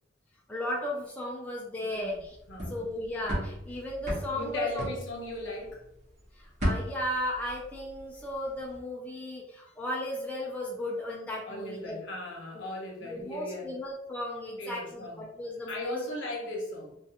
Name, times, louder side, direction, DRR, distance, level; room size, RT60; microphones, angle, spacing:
voice 1, 0.5-2.4 2.7-4.9 6.4-12.0 12.5-12.7 13.0-16.0, left 1 dB, 5° left, -4 dB, 0.3 m, -35 dB
voice 2, 1.8-2.2 2.5-2.8 4.3-5.8 11.5-13.8 14.6-15.3 15.7-17.0, left 1 dB, 70° left, -1 dB, 0.8 m, -37 dB
sound 1, 2.2-5.9 6.2-8.2 8.5-8.8, equal, 35° right, 0.8 m, -35 dB
2.3 x 2.3 x 2.7 m, 0.84 s
head